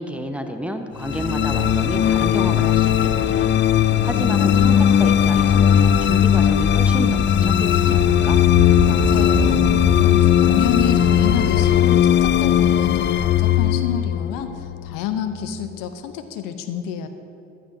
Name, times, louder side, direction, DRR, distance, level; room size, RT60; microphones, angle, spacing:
voice 1, 0.0-8.4, equal, 5° right, 6 dB, 1.1 m, -31 dB
sound 1, 1.0-15.4, left 10 dB, 35° left, 0.4 m, -18 dB
sound 2, 1.1-11.8, right 2 dB, 30° right, 2.0 m, -30 dB
voice 2, 8.9-9.6 10.0-17.1, left 9 dB, 65° left, 8 dB, 0.8 m, -28 dB
15.0 x 12.5 x 2.7 m, 2.8 s
hypercardioid pair, 45°, 35 cm